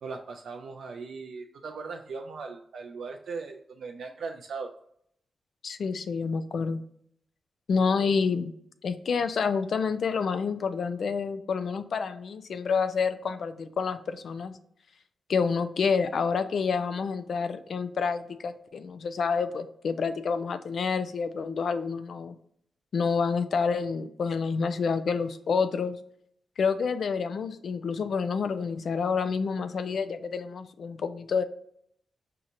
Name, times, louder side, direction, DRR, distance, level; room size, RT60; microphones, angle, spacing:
voice 1, 0.0-4.7, right 4 dB, 75° right, 2 dB, 0.3 m, -38 dB
voice 2, 5.6-6.8 7.7-8.5 8.8-14.6 15.3-22.4 22.9-26.0 26.6-31.4, left 5 dB, 70° left, 10 dB, 0.3 m, -28 dB
4.9 x 2.8 x 2.5 m, 0.68 s
supercardioid pair, 40°, 0 cm